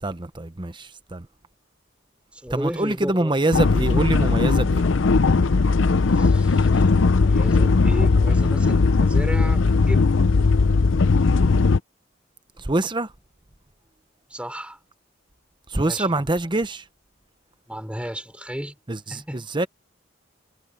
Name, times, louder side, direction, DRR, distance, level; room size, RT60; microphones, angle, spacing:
voice 1, 0.0-1.3 2.5-4.8 12.6-13.1 15.7-16.8 18.9-19.7, right 2 dB, 25° right, 0.9 m, -25 dB
voice 2, 2.3-3.4 6.1-6.8 7.1-10.2 14.3-14.8 15.8-16.2 17.7-18.7 19.1-19.4, equal, 5° right, 5.8 m, -34 dB
sound 1, 3.5-11.8, left 4 dB, 75° left, 0.6 m, -18 dB
head